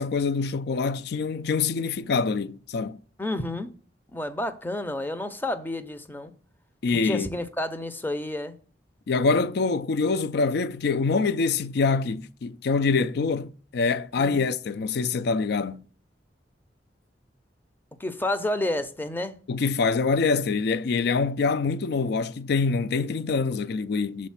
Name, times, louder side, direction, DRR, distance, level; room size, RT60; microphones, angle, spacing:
voice 1, 0.0-3.0 6.8-7.3 9.1-15.8 19.5-24.3, left 4 dB, 60° left, 0.4 m, -25 dB
voice 2, 3.2-3.7 4.1-6.3 7.0-8.5 14.2-14.4 18.0-19.3, left 1 dB, 10° left, 0.5 m, -30 dB
6.3 x 4.0 x 5.7 m
head